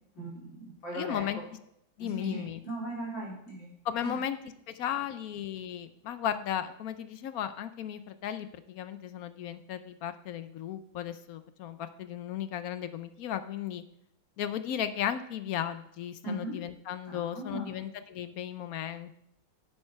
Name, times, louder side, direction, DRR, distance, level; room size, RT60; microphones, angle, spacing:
voice 1, 0.1-1.2 2.0-3.7 4.0-4.2 16.2-16.5 17.1-17.7, right 1 dB, 90° left, -5 dB, 4.5 m, -38 dB
voice 2, 0.9-1.4 2.0-2.6 3.8-4.4 4.7-13.8 14.4-19.2, left 10 dB, 70° left, 12 dB, 0.9 m, -35 dB
8.9 x 7.7 x 5.8 m, 0.75 s
omnidirectional pair, 2.0 m